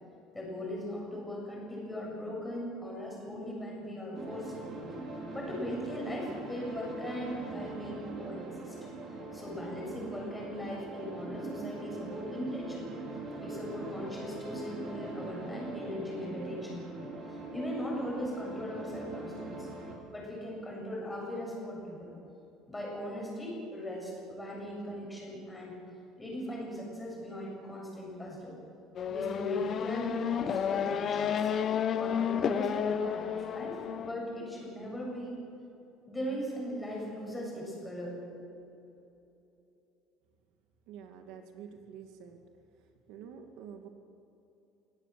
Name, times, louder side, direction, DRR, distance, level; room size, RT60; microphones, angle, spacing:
voice 1, 0.3-4.7 5.3-8.8 9.3-12.9 13.4-17.0 17.3-19.7 20.1-22.1 22.7-25.8 26.2-28.6 29.1-31.5 31.9-35.4 36.1-38.5, left 1 dB, 10° left, -2 dB, 7.2 m, -39 dB
sound 1, 4.1-19.9, right 3 dB, 35° right, 4.6 m, -42 dB
Race car auto racing / Accelerating revving vroom, 29.0-34.1, left 8 dB, 35° left, 0.9 m, -31 dB
voice 2, 40.9-42.4 43.1-43.9, right 7 dB, 70° right, 5 dB, 2.1 m, -47 dB
27.0 x 18.0 x 7.6 m, 2.9 s
cardioid pair, 160°, 0 cm